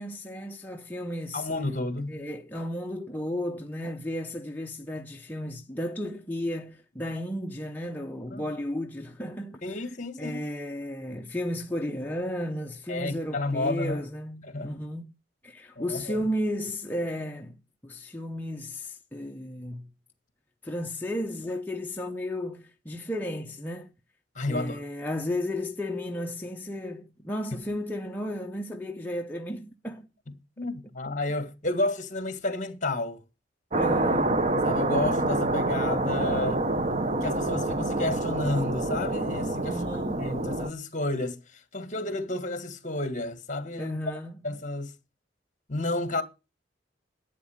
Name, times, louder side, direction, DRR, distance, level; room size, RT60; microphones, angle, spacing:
voice 1, 0.0-1.5 2.1-9.8 10.2-15.1 15.4-17.6 17.8-19.9 20.6-23.9 24.5-30.1 33.7-34.5 39.6-40.5 43.8-44.4, left 1 dB, 10° left, 0.7 m, -34 dB
voice 2, 1.3-2.2 8.3-8.4 9.6-10.4 12.9-14.0 14.4-14.8 15.8-16.2 24.4-24.8 30.6-33.2 34.6-36.6 37.1-39.8 40.2-44.0 44.4-44.9 45.7-46.2, left 2 dB, 40° left, 1.7 m, -31 dB
sound 1, 33.7-40.7, right 2 dB, 35° right, 0.9 m, -27 dB
11.0 x 8.4 x 6.5 m
head